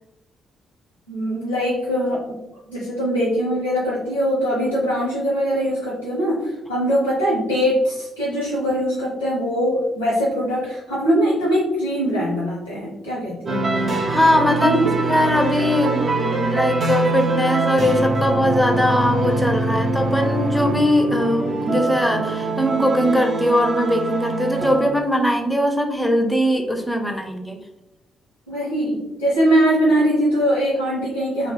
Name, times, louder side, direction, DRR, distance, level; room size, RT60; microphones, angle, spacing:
voice 1, 1.1-2.4 2.7-13.6 14.6-14.9 28.5-31.5, equal, 80° left, -8 dB, 0.7 m, -22 dB
sound 1, 13.5-24.9, right 2 dB, 40° right, 0.5 m, -23 dB
voice 2, 13.9-14.8 15.0-27.6, equal, 5° left, 3 dB, 0.5 m, -20 dB
3.0 x 2.0 x 2.8 m, 0.94 s
figure-of-eight pair, 40°, 0 cm